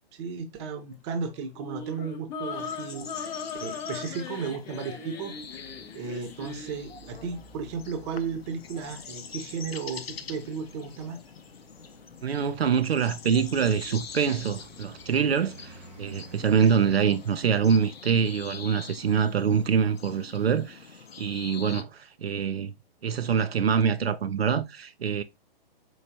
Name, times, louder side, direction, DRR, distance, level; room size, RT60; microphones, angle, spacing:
voice 1, 0.1-3.4 3.6-11.2, right 5 dB, 30° right, 0.7 m, -35 dB
sound 1, 1.5-6.8, left 5 dB, 25° left, 0.7 m, -38 dB
sound 2, 2.5-21.8, left 6 dB, 80° left, 0.6 m, -45 dB
Traffic noise roadway noise, 5.2-20.7, right 4 dB, 5° right, 0.4 m, -54 dB
voice 2, 12.2-20.9 21.2-22.7 23.0-25.2, right 7 dB, 85° right, 0.5 m, -25 dB
4.6 x 3.2 x 2.7 m
figure-of-eight pair, 125°, 30 cm